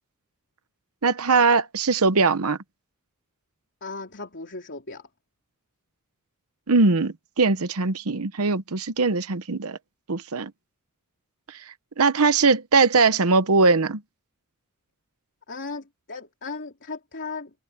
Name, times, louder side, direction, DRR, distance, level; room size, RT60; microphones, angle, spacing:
voice 1, 1.0-2.6 6.7-9.8 10.1-10.5 12.0-14.0, right 4 dB, 75° right, 0.9 m, -21 dB
voice 2, 3.8-5.1 15.5-17.5, left 4 dB, 55° left, 3.6 m, -36 dB
head